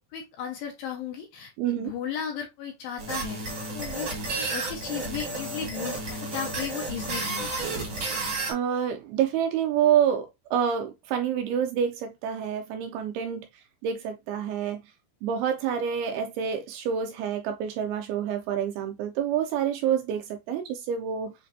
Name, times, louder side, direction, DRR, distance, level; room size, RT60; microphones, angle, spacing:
voice 1, 0.1-3.4 3.7-4.1 4.4-7.6, left 8 dB, 75° left, 2.2 m, -35 dB
voice 2, 1.6-1.9 8.5-13.5 13.8-14.8 15.2-21.3, right 8 dB, 80° right, 2.2 m, -27 dB
sound 1, 3.0-8.5, right 3 dB, 55° right, 1.1 m, -32 dB
7.2 x 2.5 x 2.7 m
omnidirectional pair, 4.7 m